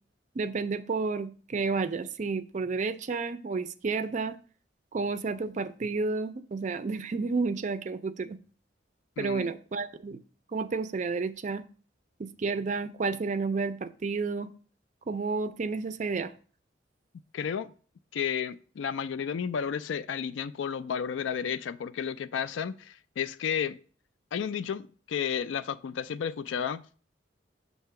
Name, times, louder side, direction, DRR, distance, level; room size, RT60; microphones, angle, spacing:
voice 1, 0.4-4.4 4.9-8.4 9.2-10.2 10.5-11.6 12.2-14.5 15.1-16.3, right 4 dB, 40° right, 0.4 m, -31 dB
voice 2, 9.2-9.5 17.3-17.7 18.1-23.8 24.3-26.8, left 7 dB, 80° left, 0.3 m, -32 dB
6.7 x 2.8 x 5.7 m
head